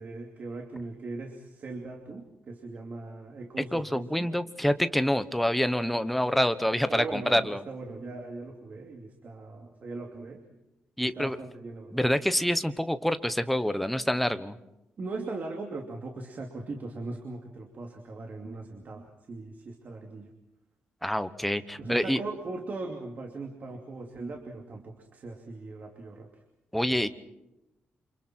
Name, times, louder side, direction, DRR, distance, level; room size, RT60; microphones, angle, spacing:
voice 1, 0.0-4.3 6.9-10.4 11.0-12.2 15.0-20.3 21.8-26.3, right 3 dB, 40° right, 2 dB, 2.7 m, -39 dB
voice 2, 3.7-7.6 11.0-11.4 11.9-14.6 21.0-22.2 26.7-27.1, equal, ahead, 11 dB, 1.1 m, -27 dB
28.0 x 27.5 x 4.5 m, 0.93 s
wide cardioid pair, 160°, 4 cm